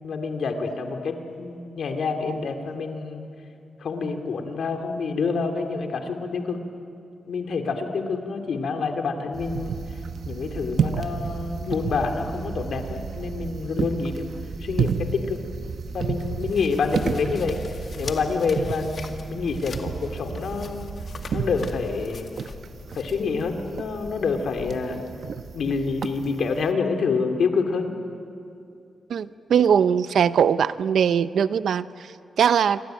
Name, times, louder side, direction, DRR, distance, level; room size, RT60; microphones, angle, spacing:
voice 1, 0.0-3.2 3.8-6.6 7.2-9.8 10.3-14.3 14.6-15.4 15.9-17.6 18.0-20.9 21.3-22.3 22.9-25.0 25.5-27.9, left 4 dB, 70° left, 5 dB, 2.8 m, -27 dB
sound 1, 9.3-26.7, right 6 dB, 65° right, 1.1 m, -32 dB
sound 2, 14.6-24.7, left 5 dB, 50° left, 2.1 m, -43 dB
voice 2, 29.1-32.8, right 8 dB, 80° right, 14 dB, 0.7 m, -21 dB
27.5 x 23.5 x 9.1 m, 2.5 s
wide cardioid pair, 120°, 0 cm